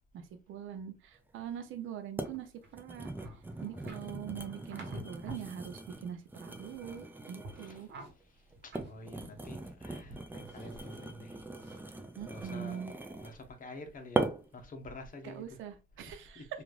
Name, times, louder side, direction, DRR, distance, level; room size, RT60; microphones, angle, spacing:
voice 1, 0.1-3.1 3.6-7.9 12.2-12.9 15.2-16.4, right 9 dB, 80° right, 0.6 m, -43 dB
sound 1, 1.4-1.5 2.2-2.4 2.7-7.9 8.5-13.4 14.1-14.6 15.1-15.4, right 2 dB, 10° right, 0.4 m, -40 dB
sound 2, 2.3-5.6 5.9-7.1 7.4-9.7 10.0-11.1 11.5-11.8, right 1 dB, 65° right, 1.0 m, -49 dB
voice 2, 8.6-11.4 11.9-12.0 12.3-15.6 16.0-16.5, left 2 dB, 45° left, 0.8 m, -49 dB
3.0 x 2.5 x 2.4 m
cardioid pair, 90°, 20 cm